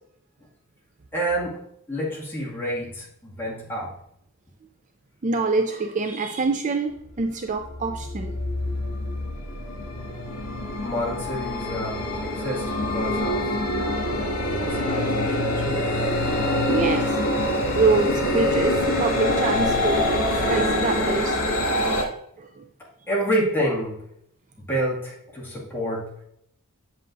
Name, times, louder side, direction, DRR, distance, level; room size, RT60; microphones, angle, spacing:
voice 1, 1.1-1.6 1.9-3.9 10.8-13.5 14.5-15.8 23.1-24.0 24.7-26.1, equal, 10° left, -6 dB, 2.1 m, -28 dB
voice 2, 5.2-8.3 16.7-17.2 17.7-20.1 20.5-21.4 22.4-22.6, right 3 dB, 35° right, 6 dB, 0.4 m, -25 dB
sound 1, 7.0-7.2 7.6-22.0, left 1 dB, 70° left, 2.2 m, -25 dB
7.6 x 7.5 x 2.6 m, 0.72 s
head